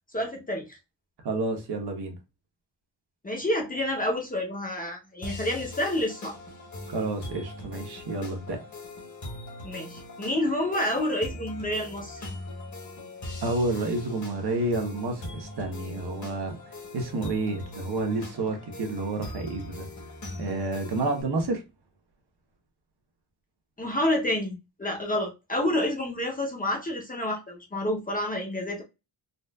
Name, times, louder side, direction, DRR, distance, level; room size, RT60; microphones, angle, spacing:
voice 1, 0.1-0.8 3.2-6.4 9.6-12.3 23.8-28.8, left 1 dB, 20° left, 0.7 m, -29 dB
voice 2, 1.2-2.1 6.9-8.6 13.4-16.5 16.9-19.9 20.4-21.6, right 2 dB, 55° right, 1.1 m, -29 dB
sound 1, 5.2-21.2, left 1 dB, 40° left, 1.1 m, -41 dB
4.0 x 2.4 x 2.3 m
wide cardioid pair, 155°, 46 cm